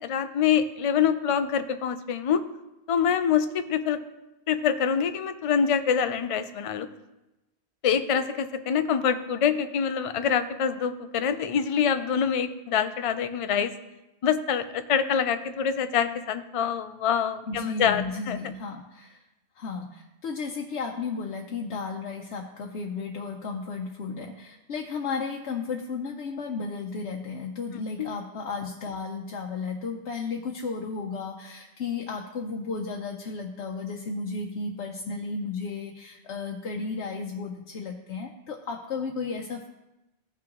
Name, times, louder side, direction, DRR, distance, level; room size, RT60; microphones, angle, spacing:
voice 1, 0.0-2.4 2.9-4.0 4.5-6.9 7.8-13.7 14.2-18.4 27.7-28.1, left 7 dB, 50° left, 10 dB, 0.4 m, -25 dB
voice 2, 17.4-19.2 19.6-39.7, left 4 dB, 80° left, 0 dB, 1.0 m, -34 dB
15.0 x 6.1 x 3.0 m, 0.98 s
omnidirectional pair, 1.1 m